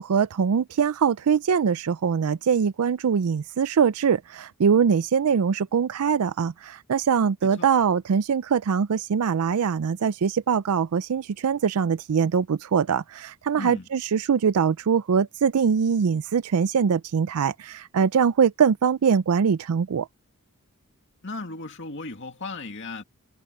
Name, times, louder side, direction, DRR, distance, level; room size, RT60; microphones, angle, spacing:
voice 1, 0.0-20.1, right 6 dB, 85° right, 0.4 m, -23 dB
voice 2, 13.6-13.9 21.2-23.0, left 3 dB, 60° left, 2.2 m, -36 dB
head